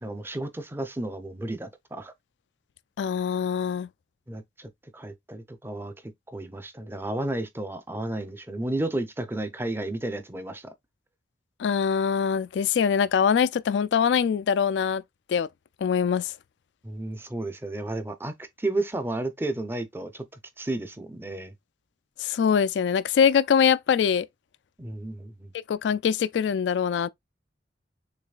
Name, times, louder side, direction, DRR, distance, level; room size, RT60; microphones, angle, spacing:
voice 1, 0.0-2.1 4.3-5.9 6.3-10.7 16.8-20.3 20.6-21.5 24.8-25.5, right 2 dB, 15° right, 0.6 m, -32 dB
voice 2, 3.0-3.9 11.6-15.0 15.3-15.5 15.8-16.3 22.2-24.3 25.7-27.1, left 7 dB, 80° left, 0.3 m, -23 dB
6.7 x 3.1 x 2.4 m
head